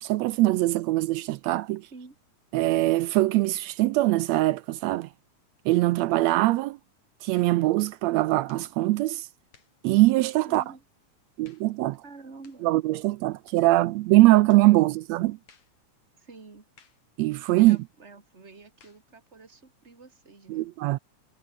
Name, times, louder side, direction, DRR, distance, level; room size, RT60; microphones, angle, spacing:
voice 1, 0.0-1.8 2.5-5.1 5.6-6.8 7.2-9.3 9.8-10.6 11.4-12.0 12.6-15.4 17.2-17.8 20.5-21.0, right 18 dB, 80° right, 1.6 m, -22 dB
sound 1, 6.3-6.5 7.3-7.6 8.5-8.7 9.5-9.8 10.5-10.8 11.4-11.7 12.4-12.7 13.5-13.7 14.5-14.7 15.5-15.8 16.8-17.1 17.7-17.9 18.8-19.1, left 6 dB, 60° left, 4.5 m, -60 dB
voice 2, 10.4-10.8 12.0-12.8 16.2-16.7 17.6-20.7, right 4 dB, 20° right, 3.3 m, -48 dB
omnidirectional pair, 3.6 m